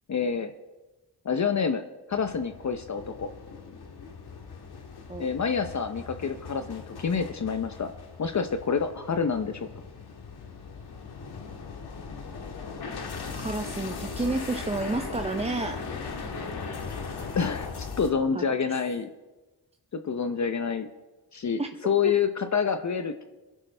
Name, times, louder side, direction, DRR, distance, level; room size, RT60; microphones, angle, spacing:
voice 1, 0.1-0.5 1.2-3.3 5.2-7.9 8.2-9.7 17.4-19.1 19.9-20.9 21.3-23.2, left 6 dB, 45° left, 8 dB, 0.7 m, -28 dB
sound 1, 2.1-18.1, left 4 dB, 80° left, 1.7 m, -39 dB
voice 2, 13.4-15.8 18.3-18.6 21.6-21.7 22.0-22.1, right 2 dB, 15° right, 6 dB, 0.6 m, -30 dB
21.5 x 11.0 x 3.3 m, 1.2 s
wide cardioid pair, 90°, 39 cm